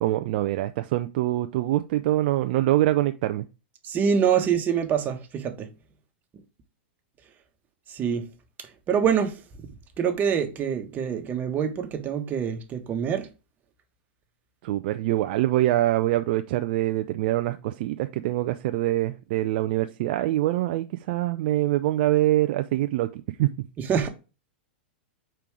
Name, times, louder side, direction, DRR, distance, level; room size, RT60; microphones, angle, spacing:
voice 1, 0.0-3.4 14.6-23.5, right 15 dB, 55° right, 0.5 m, -24 dB
voice 2, 3.8-5.7 7.9-8.2 8.9-9.4 10.0-13.3 23.8-24.1, right 7 dB, 30° right, 1.3 m, -25 dB
5.2 x 4.5 x 4.8 m
hypercardioid pair, 110°, 6 cm